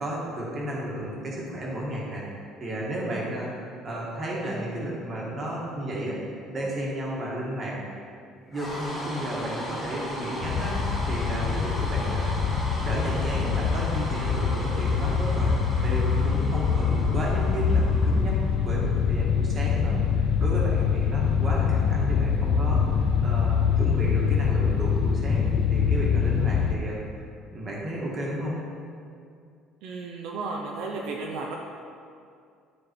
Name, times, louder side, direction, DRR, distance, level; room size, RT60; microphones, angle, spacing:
voice 1, 0.0-8.0 8.5-12.3 12.8-15.5 15.8-22.8 23.2-25.4 25.7-27.0 27.5-28.6, right 1 dB, 25° right, -4 dB, 1.6 m, -33 dB
sound 1, 8.5-18.8, equal, 5° left, 2.2 m, -37 dB
sound 2, 10.4-26.7, left 6 dB, 50° left, 0.5 m, -24 dB
voice 2, 29.8-31.6, right 3 dB, 65° right, 0 dB, 0.8 m, -33 dB
12.0 x 4.5 x 4.5 m, 2.3 s
cardioid pair, 175°, 0 cm